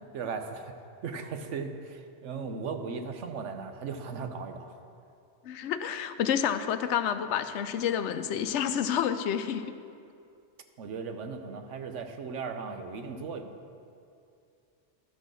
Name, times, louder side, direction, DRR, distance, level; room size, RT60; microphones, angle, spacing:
voice 1, 0.1-0.7 1.0-4.7 10.8-13.6, right 5 dB, 90° right, 6 dB, 1.1 m, -37 dB
voice 2, 5.5-9.7, left 8 dB, 80° left, 10 dB, 0.9 m, -29 dB
11.5 x 6.1 x 6.6 m, 2.5 s
omnidirectional pair, 1.2 m